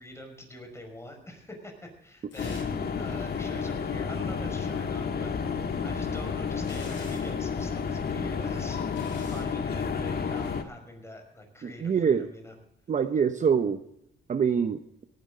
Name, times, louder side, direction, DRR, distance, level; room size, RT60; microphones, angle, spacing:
voice 1, 0.0-12.5, left 1 dB, 15° left, 4 dB, 5.5 m, -45 dB
sound 1, 2.3-2.8 3.1-3.2 5.6-7.4 8.3-9.5 10.3-10.6, left 4 dB, 70° left, 6.3 m, -49 dB
sound 2, 2.4-10.6, left 6 dB, 50° left, 1.5 m, -31 dB
voice 2, 11.6-12.3 12.9-13.8 14.3-14.8, right 7 dB, 40° right, 9 dB, 0.8 m, -25 dB
18.0 x 12.0 x 3.8 m, 0.78 s
cardioid pair, 90°, 20 cm